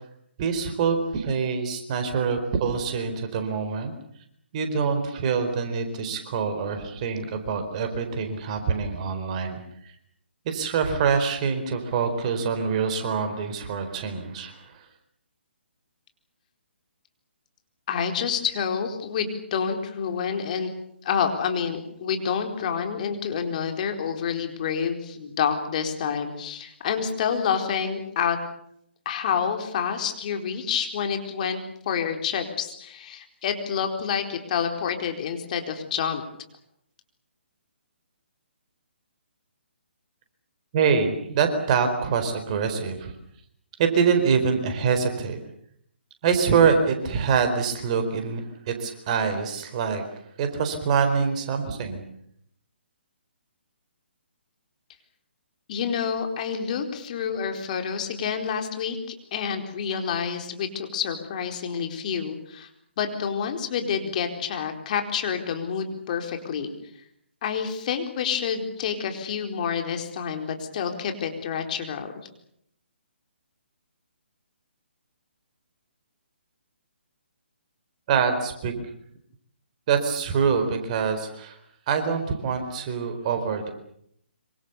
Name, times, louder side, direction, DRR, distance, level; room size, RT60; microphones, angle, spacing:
voice 1, 0.4-3.9 4.5-9.6 10.4-14.6 40.7-43.1 43.8-45.4 46.2-50.0 50.4-52.0 78.1-78.7 79.9-81.6 81.9-83.7, right 6 dB, 35° right, 7 dB, 4.3 m, -25 dB
voice 2, 17.9-20.7 21.0-28.4 29.0-31.6 31.8-36.2 55.7-59.0 59.3-62.7 63.0-66.7 67.4-72.1, left 7 dB, 40° left, 5 dB, 4.3 m, -28 dB
26.0 x 25.5 x 7.0 m, 0.72 s
figure-of-eight pair, 140°, 6 cm